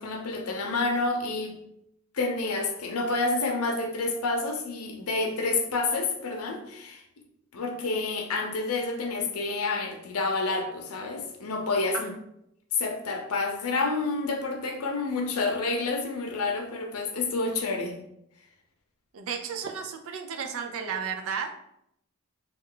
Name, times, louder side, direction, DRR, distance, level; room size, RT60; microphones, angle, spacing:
voice 1, 0.0-1.6 2.1-7.0 7.5-12.1 12.7-17.9, left 3 dB, 85° left, 4 dB, 0.6 m, -29 dB
voice 2, 19.1-21.6, right 6 dB, 65° right, 5 dB, 0.4 m, -33 dB
3.2 x 2.3 x 3.7 m, 0.77 s
head